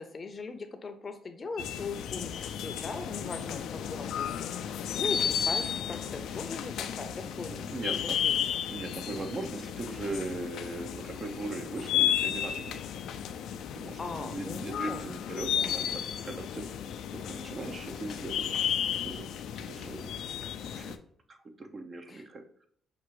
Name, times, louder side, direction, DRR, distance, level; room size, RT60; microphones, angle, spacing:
voice 1, 0.0-7.7 8.2-8.5 14.0-15.0 15.3-15.8 22.1-22.2, left 4 dB, 35° left, 8 dB, 0.6 m, -40 dB
sound 1, 1.6-21.0, left 9 dB, 80° left, 0.3 m, -33 dB
voice 2, 7.3-8.2 8.7-12.9 13.7-16.8 17.1-18.7 19.0-19.3 19.7-20.4 20.8-21.0 21.3-22.6, right 2 dB, 40° right, 6 dB, 0.7 m, -39 dB
5.9 x 2.5 x 3.1 m, 0.63 s
cardioid pair, 90°, 0 cm